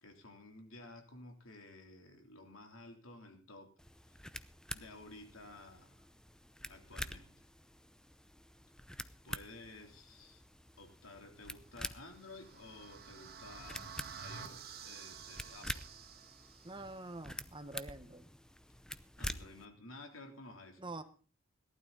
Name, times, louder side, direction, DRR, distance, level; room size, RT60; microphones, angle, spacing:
voice 1, 0.0-3.7 4.1-4.2 4.7-6.1 6.6-7.5 9.2-10.4 10.8-15.9 19.2-21.0, left 2 dB, 90° left, 4 dB, 3.4 m, -54 dB
sound 1, 3.8-19.7, left 1 dB, 5° left, 0.6 m, -48 dB
sound 2, 11.9-16.9, right 7 dB, 50° right, 1.8 m, -51 dB
voice 2, 16.6-18.3 20.8-21.0, right 2 dB, 25° right, 9 dB, 1.2 m, -46 dB
18.0 x 12.0 x 4.0 m, 0.37 s
head